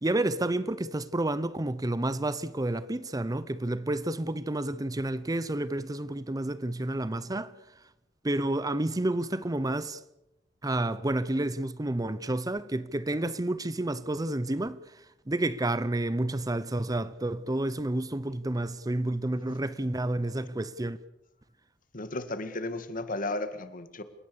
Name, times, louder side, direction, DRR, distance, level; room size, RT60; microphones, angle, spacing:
voice 1, 0.0-7.6 8.2-10.0 10.6-21.0, right 1 dB, 20° right, 0.7 m, -30 dB
voice 2, 21.9-24.0, left 2 dB, 50° left, 2.0 m, -34 dB
29.0 x 17.5 x 6.9 m
head